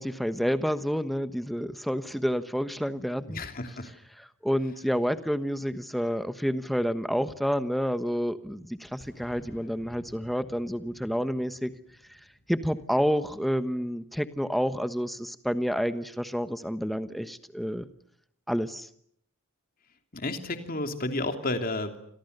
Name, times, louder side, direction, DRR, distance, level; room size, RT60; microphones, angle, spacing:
voice 1, 0.0-3.4 4.2-11.7 12.1-12.2 12.5-17.9 18.5-18.9, equal, ahead, 11 dB, 1.2 m, -29 dB
voice 2, 3.3-3.9 20.1-22.0, left 2 dB, 40° left, 6 dB, 3.1 m, -31 dB
Boom, 9.0-13.7, left 1 dB, 70° left, 4.9 m, -55 dB
29.5 x 26.5 x 6.8 m, 0.67 s
head